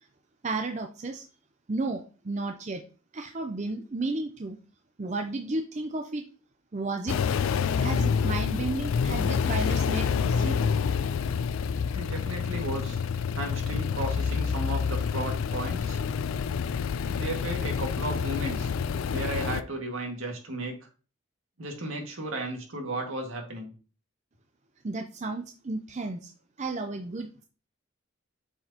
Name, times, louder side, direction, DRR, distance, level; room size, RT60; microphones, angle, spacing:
voice 1, 0.4-1.2 1.7-2.8 3.1-4.6 5.0-6.2 6.7-7.2 7.8-10.6 24.8-26.3 26.6-27.4, right 3 dB, 35° right, 5 dB, 0.5 m, -33 dB
sound 1, 7.1-19.6, left 6 dB, 75° left, 0.4 m, -28 dB
voice 2, 11.9-13.0 13.3-16.0 17.1-18.7 19.1-20.7 21.6-23.7, right 1 dB, 75° right, 1 dB, 1.9 m, -34 dB
7.7 x 4.6 x 2.8 m, 0.36 s
head